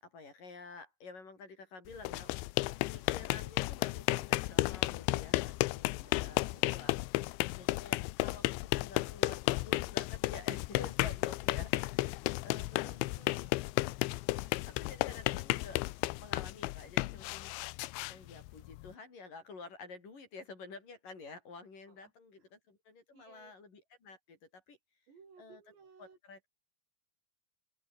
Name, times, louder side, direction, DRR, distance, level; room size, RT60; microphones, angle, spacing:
voice 1, 0.0-2.3 2.9-7.0 7.6-12.1 12.4-12.8 14.3-15.8 16.2-17.5 18.1-24.8 25.4-25.6 26.0-26.5, left 4 dB, 45° left, 7.3 m, -50 dB
sound 1, 1.9-18.9, left 20 dB, 80° left, 3.0 m, -33 dB
voice 2, 5.9-6.7 12.2-13.5 21.9-22.1 22.4-22.5 23.1-23.5 25.1-26.2, right 5 dB, 70° right, 7.9 m, -60 dB
open air
omnidirectional pair, 5.2 m